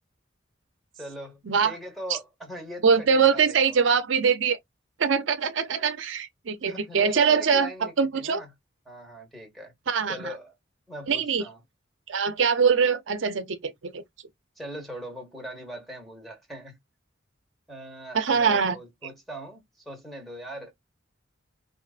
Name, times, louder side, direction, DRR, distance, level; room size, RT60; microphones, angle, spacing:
voice 1, 0.9-3.7 6.7-8.5 8.9-9.7 10.1-10.5 10.9-11.6 14.6-16.8 17.7-20.7, equal, ahead, 1.2 m, -41 dB
voice 2, 1.5-1.8 2.1-2.2 2.8-4.6 5.0-8.4 9.9-10.3 11.1-11.4 12.1-14.0 18.1-18.8, right 6 dB, 70° right, 0.6 m, -23 dB
4.5 x 2.6 x 2.4 m
head